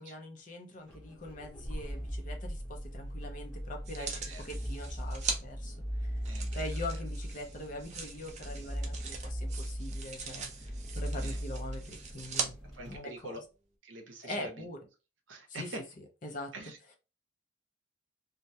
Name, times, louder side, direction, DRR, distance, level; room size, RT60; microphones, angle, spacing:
voice 1, 0.0-4.2 4.4-6.2 6.5-12.6 12.9-13.4 14.2-14.8 15.5-16.5, left 1 dB, 40° left, 0.5 m, -43 dB
sound 1, 0.9-13.0, equal, ahead, 0.8 m, -39 dB
sound 2, 3.9-5.4 6.2-12.5 13.2-13.3, right 5 dB, 35° right, 0.4 m, -41 dB
voice 2, 4.0-4.4 6.3-6.7 11.1-11.4 12.7-13.4 13.8-14.7 15.3-15.8 16.5-17.0, right 2 dB, 70° right, 0.7 m, -44 dB
2.2 x 2.1 x 2.7 m
head